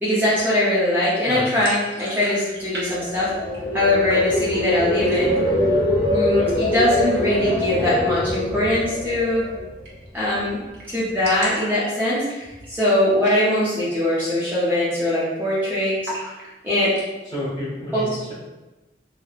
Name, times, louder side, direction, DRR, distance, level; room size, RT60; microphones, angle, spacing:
voice 1, 0.0-3.3 3.7-5.3 6.1-9.4 10.1-10.6 10.9-12.2 12.7-16.0 16.6-16.9 17.9-18.1, left 1 dB, 10° right, -10 dB, 0.5 m, -21 dB
sound 1, 1.5-2.9 3.1-3.8 4.1-4.7 5.0-5.5 5.9-6.0 6.3-6.9 8.6-8.8 9.1-9.2 9.4-9.5 9.8-10.2 10.5-10.6 10.7-12.8 13.1-13.4 13.8-13.9 14.4-14.7 14.9-15.5 16.0-17.1, right 1 dB, 65° right, 0.7 m, -37 dB
sound 2, 2.8-10.0 10.4-10.7, left 1 dB, 90° left, 0.5 m, -24 dB
voice 2, 17.2-18.3, left 1 dB, 25° left, -8 dB, 0.9 m, -30 dB
3.1 x 2.0 x 2.3 m, 1.1 s
head